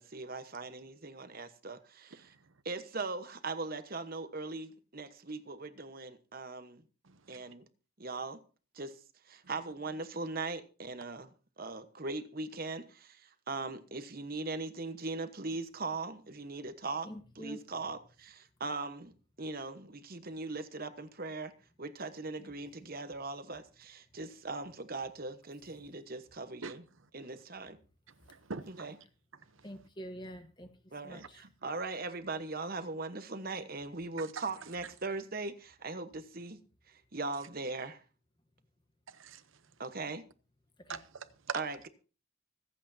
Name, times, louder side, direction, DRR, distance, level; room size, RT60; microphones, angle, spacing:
voice 1, 0.0-2.3 2.6-6.8 7.3-7.7 8.0-8.4 8.7-9.0 9.3-17.1 17.3-19.1 19.4-21.5 21.8-26.8 27.1-27.8 28.7-29.0 30.9-36.6 36.9-38.0 39.8-40.2 41.5-41.9, right 3 dB, 45° right, 1.1 m, -40 dB
voice 2, 7.1-7.4 26.6-26.7 28.3-28.9 31.1-31.3 39.2-39.4 40.9-41.6, right 5 dB, 70° right, 0.8 m, -42 dB
voice 3, 17.0-17.6 22.4-22.5 29.6-30.7 31.0-31.4 40.9-41.0, equal, 20° left, 1.2 m, -46 dB
25.0 x 8.4 x 2.7 m
head